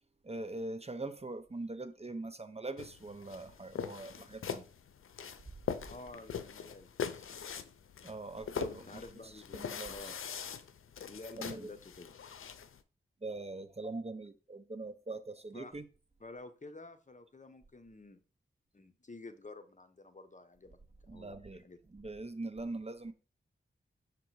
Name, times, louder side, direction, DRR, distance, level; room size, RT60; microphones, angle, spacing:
voice 1, 0.2-4.6 8.0-9.0 9.5-9.9 11.4-11.6 13.2-15.8 21.1-21.6 21.9-23.1, right 2 dB, 30° right, 0.7 m, -42 dB
sound 1, 2.8-12.8, left 7 dB, 90° left, 0.5 m, -42 dB
voice 2, 5.9-7.3 8.8-10.2 11.1-12.1 15.5-15.7 16.2-18.2 18.7-20.8 21.1-21.8, left 2 dB, 35° left, 0.9 m, -50 dB
6.6 x 3.8 x 4.7 m
cardioid pair, 55°, 21 cm